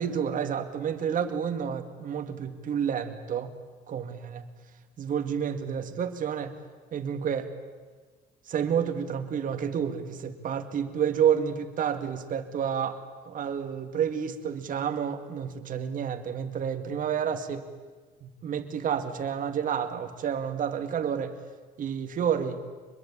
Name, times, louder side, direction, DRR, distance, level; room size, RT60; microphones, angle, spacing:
voice 1, 0.0-3.5 3.9-4.4 5.0-6.5 6.9-7.5 8.5-13.0 13.3-17.6 18.2-21.3 21.8-22.6, right 8 dB, 50° right, 7 dB, 2.3 m, -29 dB
24.5 x 21.5 x 8.7 m, 1.4 s
cardioid pair, 110°, 17 cm